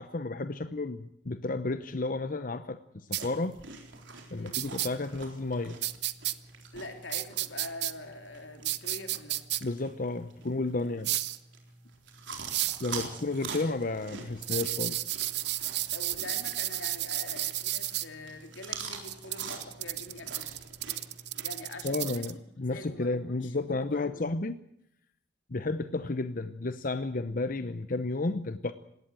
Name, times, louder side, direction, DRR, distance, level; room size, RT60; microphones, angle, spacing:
voice 1, 0.0-3.6 4.3-5.8 9.6-11.1 12.8-15.0 21.8-24.6 25.5-28.7, left 2 dB, 45° left, 11 dB, 0.8 m, -32 dB
sound 1, 3.1-3.2 4.5-4.9 5.8-6.3 7.1-7.9 8.6-9.6 11.0-11.4 12.5-12.8 14.4-18.0 19.0-22.3, right 15 dB, 60° right, 0.9 m, -32 dB
sound 2, 3.2-21.9, right 5 dB, 80° right, 3.9 m, -45 dB
voice 2, 4.3-4.6 6.7-9.4 10.8-11.0 15.9-20.6 21.4-24.3, left 2 dB, 90° left, 5 dB, 3.6 m, -44 dB
19.5 x 17.5 x 9.1 m, 0.76 s
head